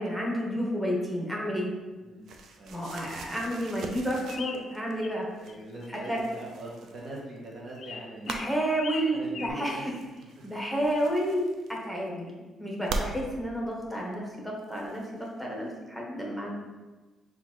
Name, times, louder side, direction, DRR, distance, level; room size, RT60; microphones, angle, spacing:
voice 1, 0.0-1.7 2.7-5.3 5.9-6.2 8.2-9.8 10.4-11.4 11.7-15.0 15.4-16.6, equal, ahead, -3 dB, 1.2 m, -31 dB
voice 2, 2.0-2.8 5.4-8.6 9.1-9.9 10.4-10.5, right 1 dB, 50° right, -2 dB, 0.9 m, -42 dB
sound 1, 2.3-5.0 5.3-7.5 8.2-8.6 9.7-12.1 12.8-13.1 14.1-14.2 14.6-15.4, right 3 dB, 70° right, 0.4 m, -40 dB
sound 2, 4.3-5.2 5.5-6.1 7.8-9.5, left 5 dB, 50° left, 0.3 m, -40 dB
6.9 x 2.5 x 2.9 m, 1.2 s
cardioid pair, 90°, 0 cm